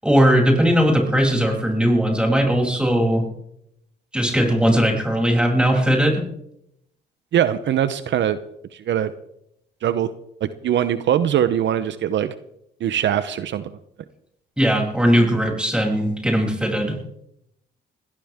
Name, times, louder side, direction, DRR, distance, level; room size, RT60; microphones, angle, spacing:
voice 1, 0.0-3.3 4.1-6.2 14.6-17.0, equal, 5° right, 0 dB, 7.4 m, -19 dB
voice 2, 7.3-8.4 8.7-9.1 9.8-10.1 10.4-12.3 12.8-13.7, right 10 dB, 65° right, 12 dB, 0.9 m, -21 dB
21.0 x 18.0 x 3.6 m, 0.77 s
cardioid pair, 90°, 20 cm